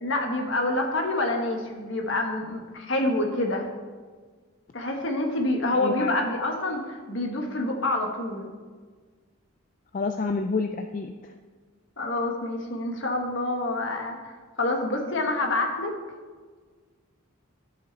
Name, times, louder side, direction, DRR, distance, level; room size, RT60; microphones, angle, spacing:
voice 1, 0.0-3.7 4.7-8.5 12.0-15.9, left 2 dB, 60° left, 2 dB, 1.4 m, -27 dB
voice 2, 5.7-6.1 9.9-11.3, left 4 dB, 40° left, 6 dB, 0.3 m, -29 dB
13.5 x 5.7 x 4.1 m, 1.5 s
head